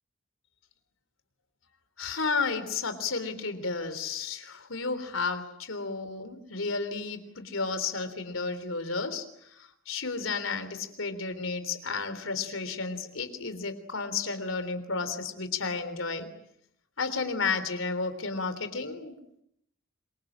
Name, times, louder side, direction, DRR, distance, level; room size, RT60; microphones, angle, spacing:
voice 1, 2.0-16.3 17.0-19.2, left 4 dB, 85° left, 11 dB, 3.5 m, -32 dB
27.0 x 24.0 x 8.9 m, 0.76 s
head